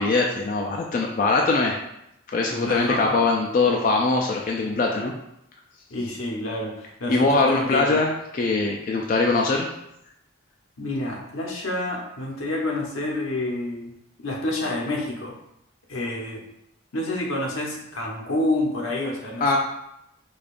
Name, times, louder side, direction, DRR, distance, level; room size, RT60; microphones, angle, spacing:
voice 1, 0.0-1.8 2.3-5.1 7.1-9.7 19.4-19.6, left 3 dB, 40° left, 0 dB, 0.3 m, -22 dB
voice 2, 2.5-3.2 5.9-8.0 10.8-13.9 14.2-15.4 15.9-16.4 16.9-19.5, left 1 dB, 85° left, -1 dB, 0.9 m, -28 dB
5.0 x 2.3 x 2.4 m, 0.80 s
head